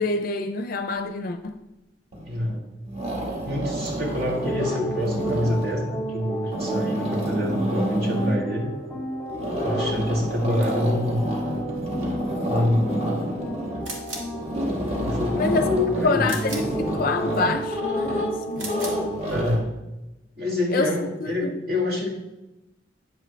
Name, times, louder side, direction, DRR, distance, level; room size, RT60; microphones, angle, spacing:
voice 1, 0.0-1.6 15.4-15.7 16.0-18.8 20.7-20.9 21.3-21.6, left 3 dB, 50° left, 0.4 m, -26 dB
sound 1, 2.1-2.6 2.9-5.9 6.3-8.5 9.3-19.6, equal, 35° right, 1.4 m, -29 dB
voice 2, 2.2-2.6 3.4-8.7 9.6-11.2 12.5-13.1 15.0-16.5 19.3-19.7 20.4-22.1, left 1 dB, 55° right, 1.8 m, -26 dB
sound 2, 4.3-19.2, right 1 dB, 10° left, 0.9 m, -33 dB
sound 3, 13.8-14.4 16.2-16.8 18.5-19.1, right 2 dB, 85° right, 2.0 m, -36 dB
9.6 x 7.6 x 3.2 m
head